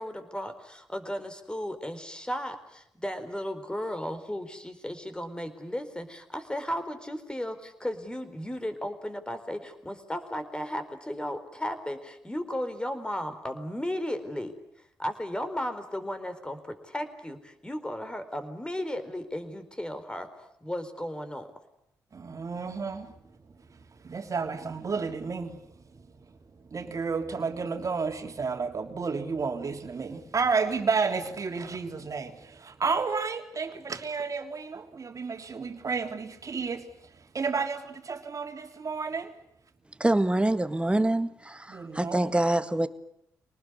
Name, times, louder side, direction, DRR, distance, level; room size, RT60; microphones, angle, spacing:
voice 1, 0.0-14.5 14.8-21.5, equal, 10° left, 4.3 m, -35 dB
voice 2, 22.1-39.3 41.7-42.2, right 5 dB, 45° right, 3.2 m, -32 dB
voice 3, 40.0-42.9, right 1 dB, 15° right, 1.7 m, -25 dB
25.0 x 19.5 x 9.8 m
hypercardioid pair, 45°, 8 cm